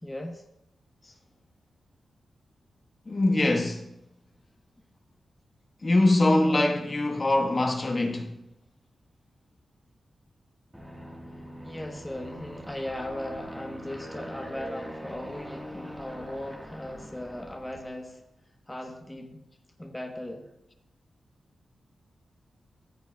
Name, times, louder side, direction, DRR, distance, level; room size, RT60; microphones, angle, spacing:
voice 1, 0.0-0.4 11.6-18.2 18.7-19.4 19.8-20.5, left 1 dB, 15° left, 1.1 m, -38 dB
voice 2, 3.1-3.8 5.8-8.3, left 2 dB, 40° left, 1.3 m, -23 dB
Aircraft, 10.7-18.1, equal, 10° right, 1.6 m, -42 dB
15.0 x 6.9 x 2.3 m
cardioid pair, 55°, 0 cm